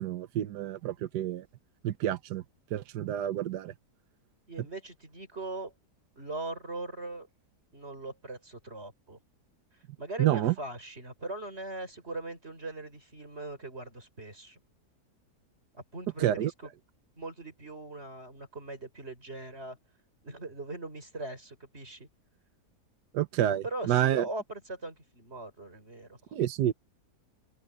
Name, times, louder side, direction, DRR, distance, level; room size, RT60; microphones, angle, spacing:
voice 1, 0.0-1.4 1.8-2.4 2.7-3.7 10.2-10.5 16.2-16.5 23.1-24.2 26.3-26.7, right 12 dB, 80° right, 1.4 m, -28 dB
voice 2, 4.5-5.7 6.2-7.3 7.7-9.2 10.0-14.6 15.9-16.7 17.2-19.8 20.2-22.1 23.6-26.2, right 2 dB, 40° right, 5.7 m, -40 dB
omnidirectional pair, 1.8 m